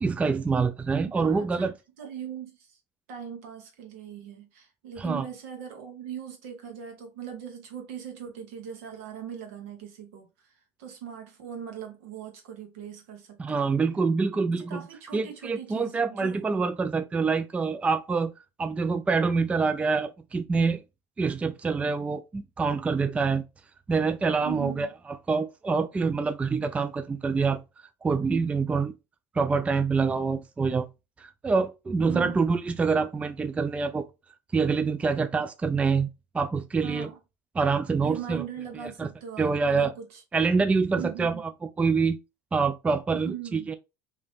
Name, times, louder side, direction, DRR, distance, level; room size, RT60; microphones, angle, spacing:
voice 1, 0.0-1.7 5.0-5.3 13.4-14.8 15.1-18.3 18.6-20.8 21.2-23.4 23.9-24.9 25.3-27.6 28.0-28.9 29.3-30.9 31.2-34.1 34.5-37.1 37.5-38.4 39.0-39.1 39.4-39.9 40.3-41.5 41.8-42.2 42.5-43.8, right 4 dB, 15° right, 0.3 m, -26 dB
voice 2, 1.1-2.8 3.1-10.3 10.8-13.8 14.6-16.4 24.4-24.9 32.1-32.5 36.8-37.2 38.0-40.2 41.0-41.4 43.1-43.8, right 9 dB, 70° right, 1.1 m, -40 dB
2.9 x 2.7 x 3.2 m
hypercardioid pair, 80°, 8 cm